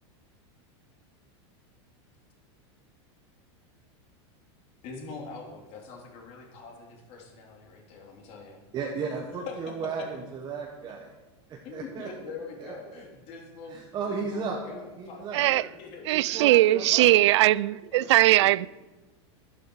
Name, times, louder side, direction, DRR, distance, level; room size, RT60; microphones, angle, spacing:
voice 1, 4.8-8.6 9.0-10.1 11.6-16.5 17.9-18.5, left 4 dB, 45° left, 3.2 m, -44 dB
voice 2, 8.7-11.1 11.5-12.1 12.6-13.0 13.7-15.4 16.1-17.1, right 5 dB, 30° right, 1.4 m, -35 dB
voice 3, 16.1-18.7, right 16 dB, 75° right, 0.4 m, -20 dB
12.0 x 12.0 x 4.8 m
supercardioid pair, 140°, 15 cm